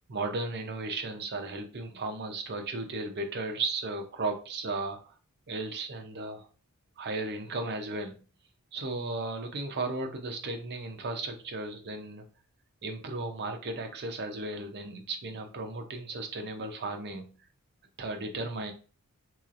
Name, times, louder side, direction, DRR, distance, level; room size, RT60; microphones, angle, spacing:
voice 1, 0.1-5.1 5.5-6.5 7.0-8.2 8.7-12.2 12.8-17.3 18.0-18.7, right 2 dB, 50° right, 5 dB, 0.6 m, -35 dB
3.8 x 3.0 x 2.5 m, 0.37 s
head